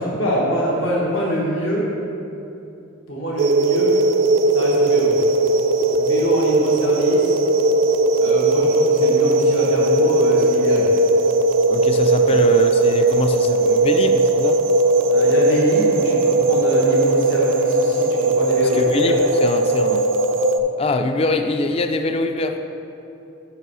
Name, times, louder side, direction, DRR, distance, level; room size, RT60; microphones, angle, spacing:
voice 1, 0.0-1.9 3.1-3.9 4.5-5.1 6.0-7.4 8.2-10.9 12.3-12.4 15.1-19.2, equal, 75° left, -4 dB, 1.1 m, -24 dB
sound 1, 3.4-20.6, right 2 dB, 70° right, 0.4 m, -18 dB
voice 2, 11.7-14.6 18.6-20.1 20.8-22.6, left 2 dB, 30° left, 7 dB, 0.3 m, -23 dB
5.7 x 5.4 x 6.1 m, 2.9 s
head